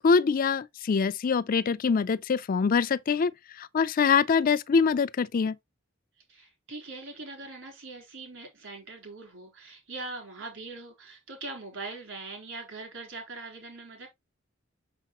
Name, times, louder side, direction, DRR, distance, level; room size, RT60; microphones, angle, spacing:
voice 1, 0.0-3.3 3.6-5.6, left 5 dB, 45° left, 0.4 m, -24 dB
voice 2, 6.3-14.1, right 3 dB, 70° right, 3.7 m, -41 dB
6.6 x 5.9 x 3.0 m
head